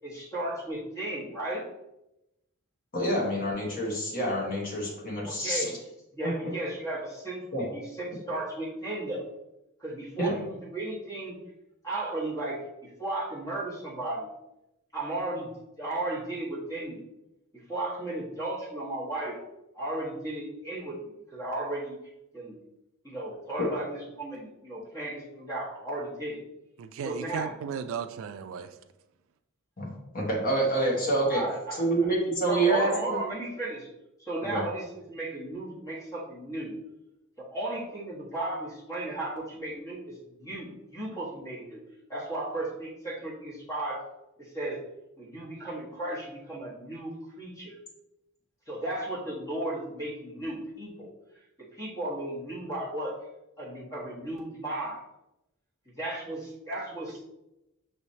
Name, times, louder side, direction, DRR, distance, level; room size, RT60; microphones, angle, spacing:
voice 1, 0.0-1.6 5.2-5.8 6.1-9.3 9.8-11.3 11.8-14.3 14.9-15.5 15.8-17.0 17.7-19.4 19.7-21.9 22.3-22.6 23.0-26.4 27.0-27.6 31.3-32.1 32.5-33.9 34.2-36.8 37.4-41.8 42.1-44.0 44.4-44.8 45.2-47.7 48.7-51.1 51.6-53.1 53.6-55.0 56.0-57.2, right 2 dB, 15° left, -5 dB, 1.4 m, -35 dB
voice 2, 2.9-5.6 6.2-6.3 7.5-7.6 10.2-10.3 29.8-31.4 31.8-33.2 34.4-34.6, right 1 dB, 40° left, -2 dB, 1.3 m, -27 dB
voice 3, 26.8-28.7, right 7 dB, 65° right, 9 dB, 0.3 m, -35 dB
6.0 x 3.2 x 2.7 m, 0.91 s
head